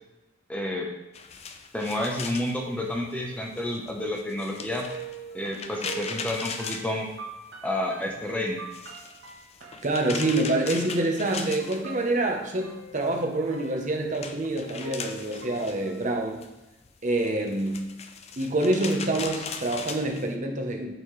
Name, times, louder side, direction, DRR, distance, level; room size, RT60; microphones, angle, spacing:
voice 1, 0.5-0.9 1.7-4.9 5.3-7.1 7.6-8.6, left 1 dB, 5° left, -1 dB, 0.8 m, -30 dB
sound 1, 1.1-7.7 8.0-12.4 12.7-20.3, left 5 dB, 35° left, 0.5 m, -39 dB
sound 2, 4.6-16.1, right 5 dB, 75° right, 1.1 m, -44 dB
voice 2, 9.8-16.4 17.0-18.0 18.4-20.9, right 2 dB, 40° right, 2 dB, 0.9 m, -26 dB
8.9 x 4.2 x 3.2 m, 0.98 s
head